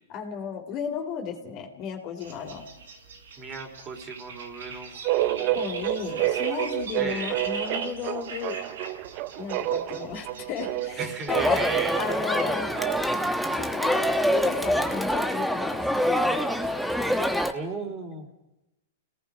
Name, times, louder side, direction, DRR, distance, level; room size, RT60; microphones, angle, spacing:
voice 1, 0.1-2.7 5.5-8.6 9.4-11.7 12.0-12.7 13.5-17.2, left 7 dB, 40° left, 4 dB, 3.7 m, -34 dB
sound 1, 2.2-11.4, right 4 dB, 85° right, 6.6 m, -41 dB
voice 2, 3.4-5.6 7.0-7.4 11.0-12.4 17.5-18.3, right 4 dB, 25° right, 4 dB, 3.7 m, -36 dB
sound 2, 5.0-13.3, right 15 dB, 45° right, 0.8 m, -29 dB
Crowd, 11.3-17.5, equal, ahead, 1.4 m, -25 dB
29.5 x 18.5 x 5.1 m, 0.94 s
hypercardioid pair, 135°, 0 cm